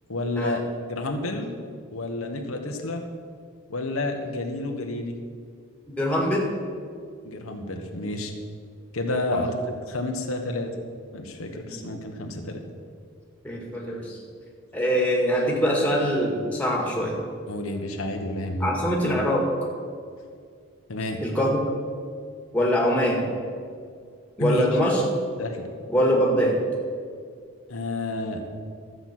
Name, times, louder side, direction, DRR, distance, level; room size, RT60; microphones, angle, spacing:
voice 1, 0.1-0.6 0.9-1.5 1.9-3.0 3.7-5.2 7.2-8.3 8.9-10.7 11.1-12.6 17.5-18.7 20.9-21.2 24.4-24.6 25.4-25.7 27.7-28.4, left 2 dB, 90° left, 3 dB, 1.3 m, -30 dB
voice 2, 6.0-6.5 9.3-9.5 11.7-11.8 13.4-14.2 14.7-17.2 18.6-19.5 21.2-21.6 22.5-23.2 24.4-25.0 25.9-26.6, equal, 5° left, -2 dB, 1.9 m, -23 dB
13.0 x 8.0 x 6.0 m, 2.1 s
head